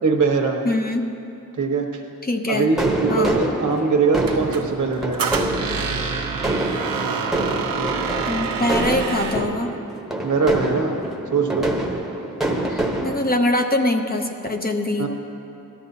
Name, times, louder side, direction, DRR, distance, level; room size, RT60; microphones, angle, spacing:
voice 1, 0.0-0.6 1.6-2.0 2.5-5.3 10.2-10.9 11.3-11.7 15.0-15.1, right 4 dB, 60° right, 2 dB, 1.2 m, -21 dB
voice 2, 0.6-1.1 2.2-2.7 3.1-3.4 8.3-9.7 12.7-15.1, left 1 dB, 25° left, 2 dB, 0.6 m, -23 dB
sound 1, 2.8-13.2, right 1 dB, ahead, 0.9 m, -26 dB
Squeak, 4.2-9.5, right 5 dB, 90° right, 0.9 m, -27 dB
17.5 x 13.0 x 2.8 m, 2.7 s
wide cardioid pair, 165°, 33 cm